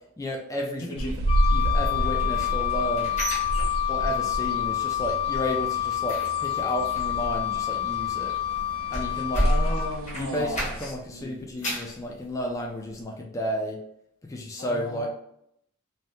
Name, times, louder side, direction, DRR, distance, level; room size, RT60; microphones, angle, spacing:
voice 1, 0.2-1.2 1.5-3.2 3.9-8.3 8.9-9.5 10.1-13.8 14.3-15.1, equal, 15° left, 0 dB, 0.3 m, -32 dB
sound 1, 1.0-10.8, right 1 dB, 75° right, 0.4 m, -31 dB
Wind instrument woodwind instrument, 1.3-9.9, left 12 dB, 60° left, 1.0 m, -28 dB
sound 2, 2.0-4.3 4.6-5.0 5.3-11.1 11.4-12.0 12.5-12.6 13.0-13.1, equal, 35° left, 0.8 m, -31 dB
voice 2, 9.4-11.4 14.6-15.1, left 1 dB, 80° left, 0 dB, 0.8 m, -35 dB
2.7 x 2.1 x 3.4 m, 0.74 s
head